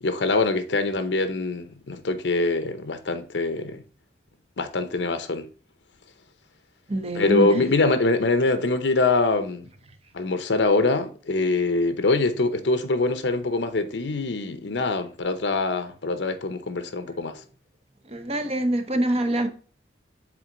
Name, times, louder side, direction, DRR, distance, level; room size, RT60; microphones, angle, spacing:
voice 1, 0.0-3.8 4.6-5.5 7.1-9.7 10.1-17.4, left 3 dB, 80° left, 0.7 m, -24 dB
voice 2, 6.9-7.7 18.1-19.5, right 1 dB, 35° right, 0.8 m, -25 dB
7.7 x 3.8 x 3.8 m
head